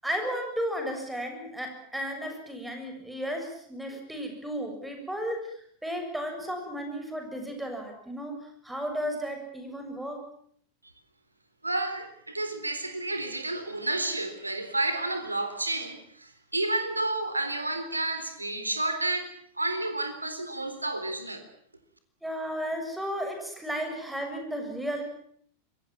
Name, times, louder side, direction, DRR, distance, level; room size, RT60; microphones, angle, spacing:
voice 1, 0.0-10.2 22.2-25.0, equal, 5° right, 7.2 m, -34 dB
voice 2, 11.6-21.5, right 2 dB, 85° right, 3.9 m, -31 dB
26.0 x 23.0 x 7.5 m
figure-of-eight pair, 90°, 0 cm